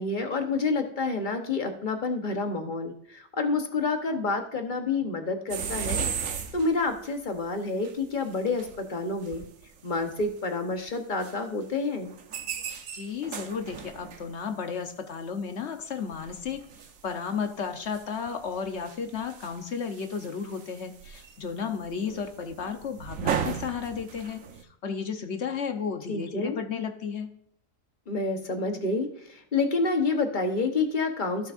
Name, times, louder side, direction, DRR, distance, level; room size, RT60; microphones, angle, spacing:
voice 1, 0.0-6.0 6.5-9.4 9.8-12.1 26.1-26.6 28.1-31.5, left 3 dB, 40° left, 5 dB, 1.1 m, -28 dB
sound 1, 5.5-7.1 7.8-7.9 8.3-8.8 9.1-10.3 10.9-11.0 11.2-11.3 12.0-14.3 15.8-15.9 16.1-17.4 17.8-24.6, right 7 dB, 75° right, 1.2 m, -36 dB
voice 2, 12.9-16.6 17.0-24.4 24.8-27.3, left 6 dB, 60° left, 6 dB, 1.1 m, -33 dB
15.5 x 6.2 x 2.5 m, 0.69 s
omnidirectional pair, 1.4 m